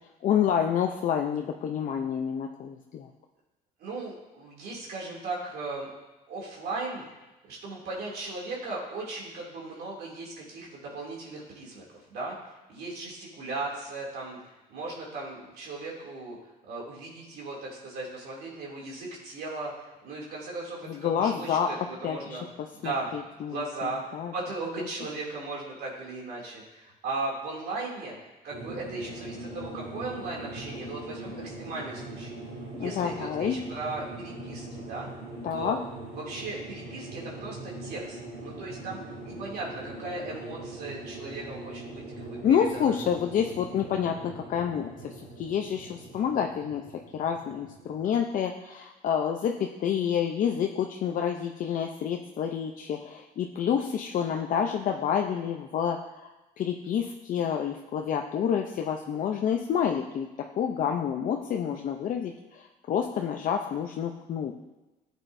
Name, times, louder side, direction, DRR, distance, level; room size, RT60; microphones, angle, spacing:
voice 1, 0.2-3.1 20.9-21.7 22.0-22.4 22.8-24.3 24.8-24.9 32.8-33.6 35.4-35.8 42.4-46.8 47.1-60.3 60.6-64.5, left 8 dB, 50° left, 3 dB, 0.6 m, -28 dB
voice 2, 3.8-5.9 6.3-7.0 7.5-12.3 12.7-14.4 14.7-16.4 16.7-19.7 20.0-22.4 22.7-23.1 23.5-24.0 24.3-28.1 28.4-32.4 32.8-35.1 35.5-35.8 36.1-42.9, right 3 dB, 70° right, -3 dB, 2.7 m, -37 dB
sound 1, 28.5-48.1, right 2 dB, 55° right, 3.6 m, -42 dB
13.5 x 8.1 x 2.7 m, 1.1 s
cardioid pair, 110°, 17 cm